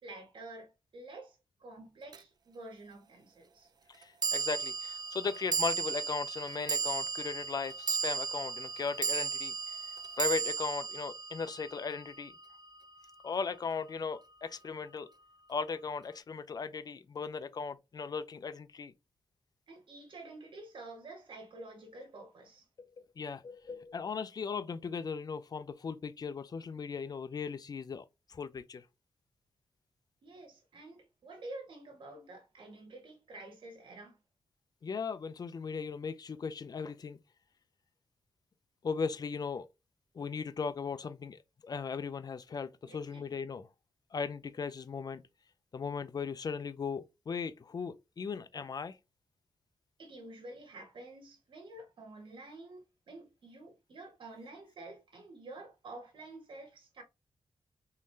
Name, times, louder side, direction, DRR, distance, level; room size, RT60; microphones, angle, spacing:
voice 1, 0.0-3.7 19.7-22.7 30.2-34.2 42.8-43.4 50.0-57.0, right 2 dB, 70° right, 1.5 m, -49 dB
sound 1, 2.1-2.2 4.2-12.6, right 5 dB, 50° right, 0.4 m, -35 dB
voice 2, 3.9-12.3 13.2-15.1 15.5-18.9 22.8-22.9 23.2-28.8 34.8-37.2 38.8-39.7 40.1-43.6 44.1-45.2 45.7-49.0, left 5 dB, 50° left, 0.6 m, -37 dB
3.9 x 3.1 x 2.7 m
cardioid pair, 90°, 9 cm